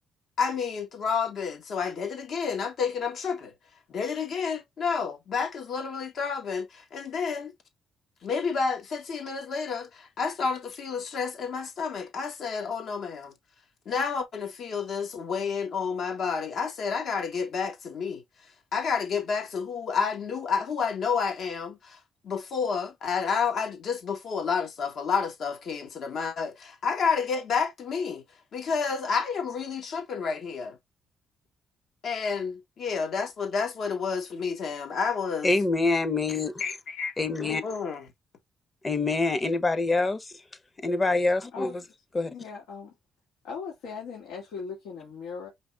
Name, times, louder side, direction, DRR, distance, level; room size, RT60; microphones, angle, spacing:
voice 1, 0.4-3.5 3.9-7.5 8.2-13.3 13.8-18.2 18.7-28.2 28.5-30.8 32.0-35.5 36.6-37.1 37.6-38.1, left 5 dB, 65° left, 1.7 m, -30 dB
voice 2, 35.4-36.5 37.2-37.6 38.8-40.3 40.8-41.8 42.1-42.3, left 3 dB, 25° left, 0.9 m, -25 dB
voice 3, 42.3-42.9 43.4-45.5, left 5 dB, 90° left, 2.4 m, -38 dB
5.1 x 3.2 x 2.4 m
cardioid pair, 90°, 0 cm